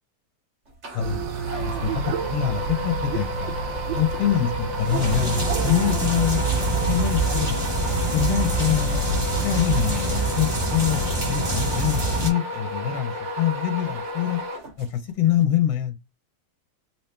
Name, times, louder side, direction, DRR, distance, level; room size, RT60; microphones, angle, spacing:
sound 1, 0.8-15.1, left 1 dB, 40° right, 1.3 m, -32 dB
voice 1, 0.9-1.3 1.6-3.6 3.9-6.4 6.9-7.5 8.1-9.1 9.4-14.4 14.8-15.9, left 10 dB, 85° left, 1.7 m, -25 dB
sound 2, 1.0-8.6, right 6 dB, 75° right, 1.3 m, -32 dB
sound 3, 4.8-12.3, right 2 dB, 25° right, 1.7 m, -25 dB
3.5 x 3.0 x 3.3 m
omnidirectional pair, 2.1 m